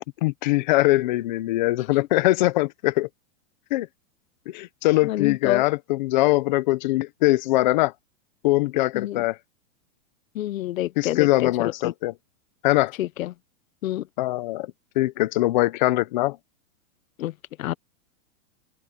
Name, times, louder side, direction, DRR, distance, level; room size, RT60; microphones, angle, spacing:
voice 1, 0.2-3.1 3.7-3.9 4.5-7.9 8.4-9.4 11.0-12.1 12.6-12.9 14.2-16.4, left 18 dB, 35° left, 0.8 m, -22 dB
voice 2, 5.0-5.6 8.9-9.2 10.3-11.9 13.0-13.3 13.8-14.1 17.2-17.3 17.6-17.7, left 14 dB, 85° left, 0.9 m, -27 dB
supercardioid pair, 175°, 39 cm